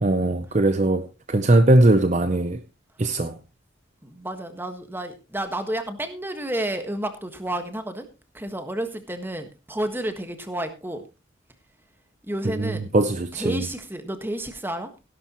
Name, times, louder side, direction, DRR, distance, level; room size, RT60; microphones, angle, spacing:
voice 1, 0.0-1.0 1.3-2.6 3.0-3.3 12.6-13.6, right 2 dB, 35° right, 0.7 m, -20 dB
voice 2, 4.0-8.1 8.3-11.0 12.2-12.9 13.3-14.9, right 1 dB, 10° right, 1.5 m, -31 dB
16.5 x 11.5 x 3.0 m
head